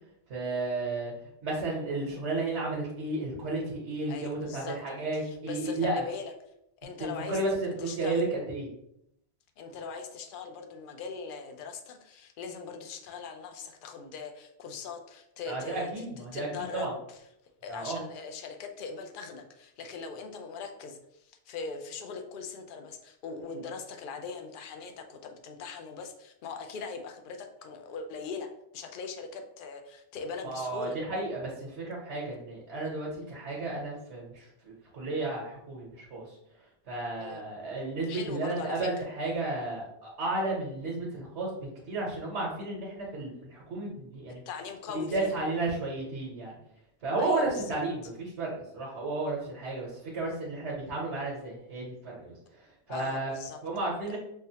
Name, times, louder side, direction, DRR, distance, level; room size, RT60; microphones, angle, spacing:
voice 1, 0.3-1.1 1.4-6.0 7.0-8.7 15.5-16.9 17.7-18.0 30.4-36.4 36.9-44.4 44.9-46.5 47.0-52.3 52.9-53.3 53.6-54.2, right 2 dB, 75° right, -3 dB, 1.2 m, -33 dB
voice 2, 4.1-4.8 5.1-6.3 6.8-7.4 7.8-8.2 9.6-17.2 17.6-28.5 28.7-31.0 37.2-37.4 38.1-38.9 44.5-45.3 47.2-47.8 52.9-53.6 54.1-54.2, left 5 dB, 60° left, 5 dB, 0.6 m, -41 dB
5.4 x 2.0 x 2.7 m, 0.78 s
omnidirectional pair, 1.1 m